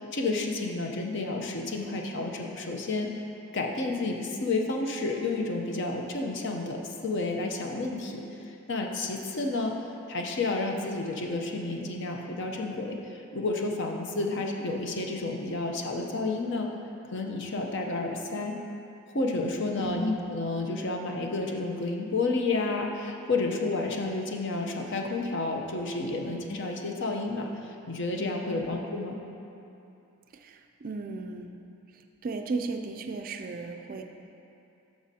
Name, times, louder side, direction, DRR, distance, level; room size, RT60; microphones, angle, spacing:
voice 1, 0.0-3.2 3.5-9.8 10.1-16.7 17.1-18.6 19.1-29.2, left 3 dB, 55° left, 2 dB, 0.7 m, -31 dB
voice 2, 19.8-20.2 28.5-28.8 30.3-31.6 31.9-34.0, right 3 dB, 40° right, 5 dB, 0.3 m, -36 dB
11.0 x 6.2 x 2.8 m, 2.8 s
head